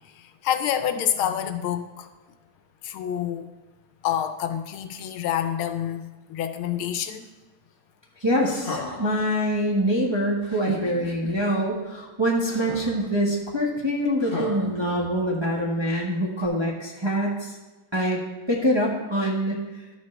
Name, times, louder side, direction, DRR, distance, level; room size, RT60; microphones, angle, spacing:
voice 1, 0.1-2.1 2.8-3.5 4.0-7.3, left 10 dB, 85° left, 9 dB, 1.5 m, -27 dB
voice 2, 8.2-17.5 17.9-18.2 18.5-19.6, equal, 20° right, -3 dB, 0.9 m, -25 dB
sound 1, 8.4-9.2 10.4-11.4 12.5-13.1 14.2-15.4 16.4-16.5, left 4 dB, 35° left, 0.9 m, -36 dB
12.5 x 7.0 x 3.3 m, 1.2 s
omnidirectional pair, 2.2 m